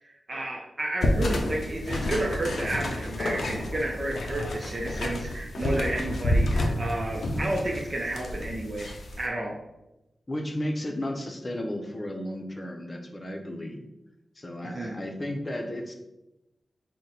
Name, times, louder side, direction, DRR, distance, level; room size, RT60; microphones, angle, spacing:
voice 1, 0.0-8.9 9.2-9.6 14.6-14.9, right 1 dB, 50° right, -1 dB, 0.6 m, -31 dB
sound 1, 1.0-9.2, left 1 dB, 80° left, 0.5 m, -29 dB
voice 2, 10.3-13.9 14.4-15.9, left 1 dB, 35° left, 3 dB, 0.7 m, -33 dB
3.8 x 2.2 x 4.1 m, 0.95 s
cardioid pair, 60°, 0 cm